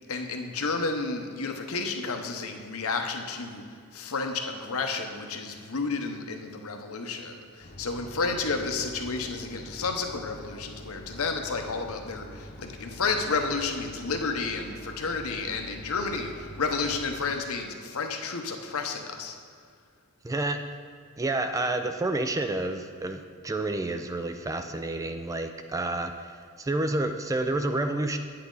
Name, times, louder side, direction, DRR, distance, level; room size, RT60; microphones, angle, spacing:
voice 1, 0.1-19.3, left 4 dB, 70° left, 4 dB, 0.9 m, -31 dB
sound 1, 7.6-17.3, equal, 35° left, 1.1 m, -45 dB
voice 2, 20.2-20.6 21.2-28.2, right 2 dB, 15° right, 7 dB, 0.3 m, -29 dB
9.3 x 8.5 x 3.9 m, 2.2 s
head